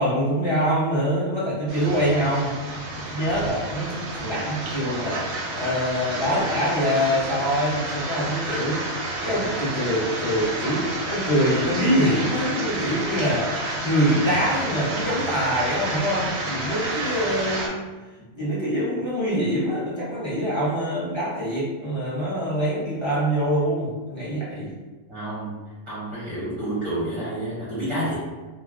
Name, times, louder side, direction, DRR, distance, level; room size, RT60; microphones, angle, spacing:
voice 1, 0.0-2.5 3.1-8.8 9.2-13.5 13.8-17.8 18.3-24.7, equal, 25° left, -10 dB, 0.7 m, -24 dB
sound 1, 1.7-17.7, right 2 dB, 65° right, 0.7 m, -30 dB
voice 2, 25.1-25.6 25.9-28.2, right 1 dB, 30° right, -10 dB, 0.7 m, -29 dB
2.3 x 2.1 x 3.5 m, 1.2 s
omnidirectional pair, 1.4 m